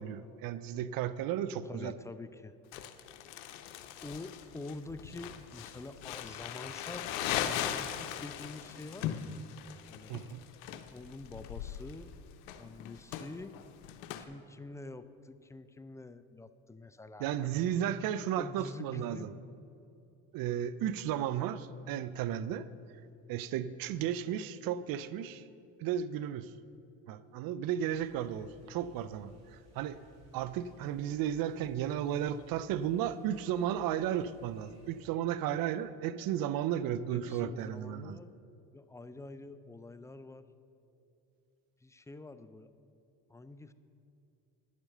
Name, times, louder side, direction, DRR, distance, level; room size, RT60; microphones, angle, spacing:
voice 1, 0.0-1.9 10.1-10.4 17.2-19.3 20.3-22.7 23.3-25.4 25.8-26.5 27.1-29.3 29.8-30.0 30.3-38.2, right 10 dB, 60° right, 15 dB, 0.5 m, -34 dB
voice 2, 1.6-2.5 4.0-7.1 7.4-9.2 9.9-10.2 10.7-12.1 12.6-13.6 14.1-17.6 18.4-19.3 37.1-38.4 38.7-40.5 41.8-42.7 43.3-43.7, left 2 dB, 10° left, 12 dB, 0.4 m, -46 dB
Crumpling crinkling, 2.7-14.2, left 10 dB, 85° left, 0.7 m, -39 dB
sound 1, 27.9-35.1, right 2 dB, 40° right, 2.8 m, -61 dB
10.0 x 7.3 x 6.6 m, 2.7 s
hypercardioid pair, 70°, 40 cm